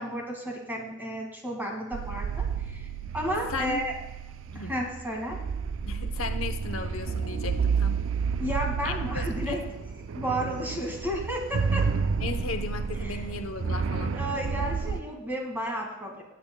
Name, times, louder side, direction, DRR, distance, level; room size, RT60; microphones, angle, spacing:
voice 1, 0.0-3.9 4.5-5.4 8.4-9.6 10.2-11.9 13.0-13.2 13.9-16.2, equal, 10° right, 0 dB, 2.0 m, -32 dB
sound 1, 1.9-15.0, right 5 dB, 70° right, 0.4 m, -30 dB
voice 2, 3.5-3.8 4.5-4.7 5.9-8.0 8.8-9.6 12.2-14.1, left 4 dB, 90° left, 7 dB, 0.8 m, -36 dB
19.5 x 8.6 x 2.2 m, 1.0 s
head